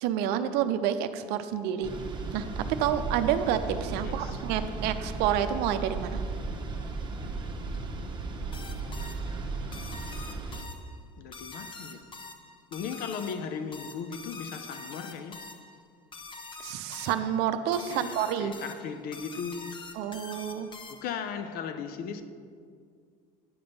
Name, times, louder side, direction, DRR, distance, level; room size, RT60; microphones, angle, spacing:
voice 1, 0.0-1.9 2.3-2.5 2.8-6.2 16.6-18.5 20.0-20.7, right 10 dB, 65° right, 0.6 m, -29 dB
sound 1, 1.8-10.6, right 3 dB, 25° right, 1.1 m, -35 dB
voice 2, 4.0-4.4 11.2-12.0 12.7-15.4 17.9-19.8 20.9-22.2, left 6 dB, 60° left, 0.7 m, -37 dB
sound 2, 8.5-21.3, left 4 dB, 25° left, 0.8 m, -45 dB
9.7 x 5.1 x 5.4 m
hypercardioid pair, 80°, 18 cm